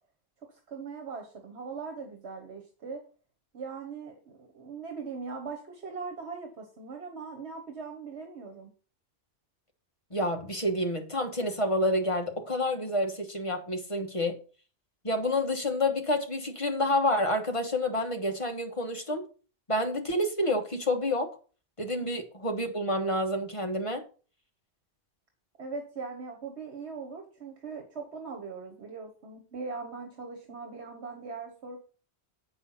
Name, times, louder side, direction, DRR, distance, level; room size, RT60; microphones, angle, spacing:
voice 1, 0.5-3.0 3.5-8.7 22.0-22.1 25.6-31.8, right 4 dB, 75° right, 1.5 m, -40 dB
voice 2, 10.1-14.4 15.0-19.3 19.7-21.3 21.8-24.0, left 1 dB, 30° left, 1.2 m, -28 dB
8.2 x 5.6 x 5.6 m
omnidirectional pair, 1.1 m